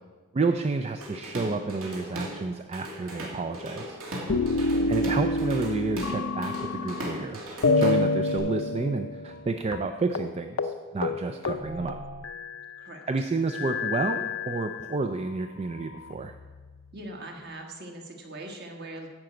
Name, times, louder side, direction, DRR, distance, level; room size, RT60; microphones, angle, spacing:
voice 1, 0.3-4.0 4.9-7.4 7.8-12.0 13.1-16.3, right 3 dB, 30° right, 7 dB, 0.3 m, -30 dB
Drum kit / Drum, 1.0-2.4 2.7-8.4, equal, 75° right, 2.5 m, -37 dB
sound 1, 4.3-7.2 7.6-9.5 9.7-9.8 10.1-10.3 10.6-10.8 11.0-12.7 13.5-15.1 15.8-16.7, left 3 dB, 60° left, 0.5 m, -28 dB
voice 2, 4.5-5.0 12.8-13.0 16.9-19.1, right 1 dB, 50° right, 2 dB, 1.4 m, -41 dB
10.5 x 5.0 x 7.7 m, 1.4 s
head